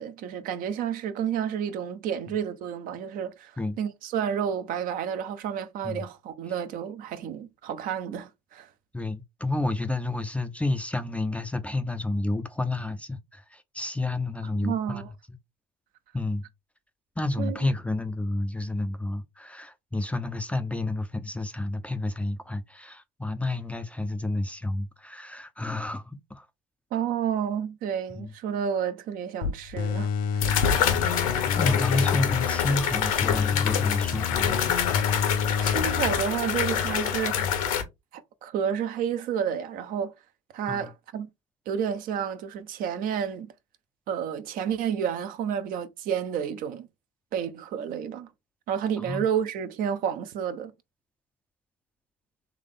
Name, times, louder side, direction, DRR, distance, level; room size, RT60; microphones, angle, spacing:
voice 1, 0.0-8.7 14.4-15.1 17.4-17.7 26.9-30.7 35.6-37.5 38.1-40.1 40.5-41.3 41.7-43.5 44.1-46.9 47.3-48.3 48.7-50.7, right 8 dB, 50° right, 0.7 m, -30 dB
voice 2, 8.9-15.1 16.1-16.5 17.2-26.5 28.1-28.3 30.7-34.6 40.7-40.9 49.0-49.2, left 2 dB, 5° left, 0.5 m, -30 dB
sound 1, 29.4-29.5 30.4-37.8, left 8 dB, 75° left, 1.0 m, -26 dB
sound 2, 29.8-32.8 33.2-36.2 36.6-36.7, left 7 dB, 50° left, 0.7 m, -29 dB
3.5 x 3.2 x 3.7 m
hypercardioid pair, 70°, 18 cm